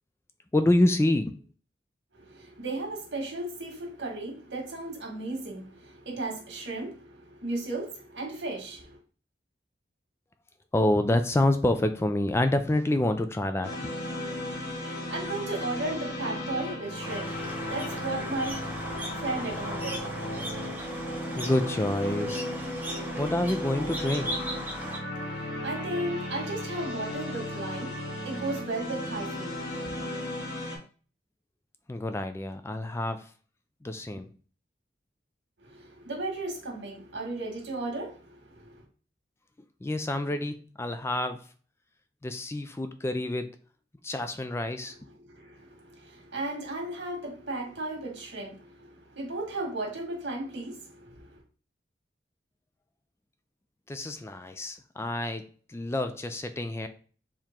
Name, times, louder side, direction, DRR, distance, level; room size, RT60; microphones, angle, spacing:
voice 1, 0.5-1.4 10.7-13.9 21.3-22.5 23.2-24.4 31.9-33.3 33.8-34.3 39.8-41.4 42.2-43.6 44.0-45.1 53.9-56.9, left 1 dB, 15° left, 0.3 m, -27 dB
voice 2, 2.1-9.0 14.3-20.3 25.0-30.1 35.6-38.8 44.6-44.7 45.1-51.4, right 2 dB, 85° right, 1.7 m, -35 dB
sound 1, 13.6-30.8, left 1 dB, 90° left, 1.7 m, -35 dB
sound 2, 17.0-25.0, right 1 dB, 10° right, 0.9 m, -38 dB
4.6 x 3.0 x 3.6 m
head